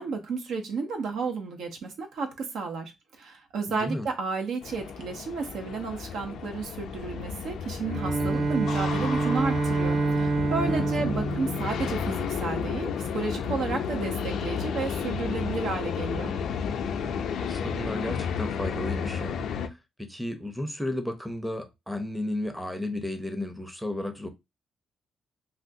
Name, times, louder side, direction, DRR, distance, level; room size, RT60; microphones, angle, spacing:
voice 1, 0.0-16.3, right 4 dB, 75° right, 0.8 m, -32 dB
voice 2, 3.7-4.1 8.2-8.5 10.6-10.9 17.4-19.4 19.7-24.3, left 1 dB, ahead, 0.6 m, -33 dB
sound 1, 4.6-19.7, left 6 dB, 75° left, 0.4 m, -32 dB
Bowed string instrument, 7.8-12.4, right 3 dB, 50° right, 0.4 m, -28 dB
3.4 x 2.4 x 2.7 m
cardioid pair, 90°, 0 cm